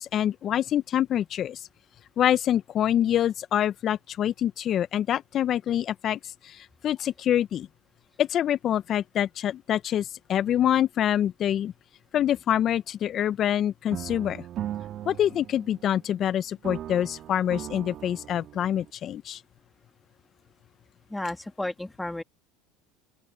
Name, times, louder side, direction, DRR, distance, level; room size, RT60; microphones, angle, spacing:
voice 1, 0.0-1.6 2.2-7.7 8.2-11.7 12.1-14.4 15.0-19.4, left 10 dB, 45° left, 1.2 m, -26 dB
sound 1, 13.9-16.3 16.6-18.9, right 12 dB, 45° right, 2.5 m, -38 dB
voice 2, 21.1-22.2, left 1 dB, 5° left, 2.2 m, -32 dB
open air
hypercardioid pair, 85°, 0 cm